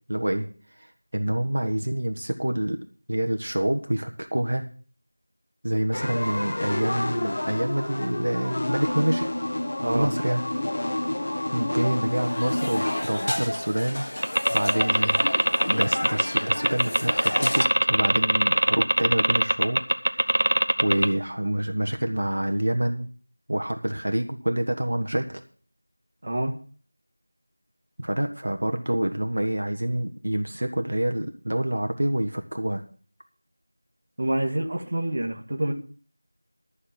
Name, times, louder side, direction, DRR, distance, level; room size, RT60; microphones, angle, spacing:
voice 1, 0.1-0.5 0.7-2.8 3.1-4.7 5.6-9.3 9.9-10.4 11.5-14.1 14.5-15.2 15.6-20.5 20.8-23.1 23.5-25.4 28.0-32.8, right 1 dB, 70° right, 4 dB, 1.4 m, -27 dB
sound 1, 5.9-13.0, left 1 dB, 40° left, 1.4 m, -29 dB
sound 2, 12.0-17.7, left 1 dB, 60° left, 1.0 m, -32 dB
sound 3, 14.2-21.1, right 1 dB, 90° right, 1.1 m, -20 dB
voice 2, 26.2-26.5 34.2-35.7, right 1 dB, 45° right, 3 dB, 1.7 m, -27 dB
12.0 x 6.5 x 7.6 m, 0.41 s
figure-of-eight pair, 175°, 0 cm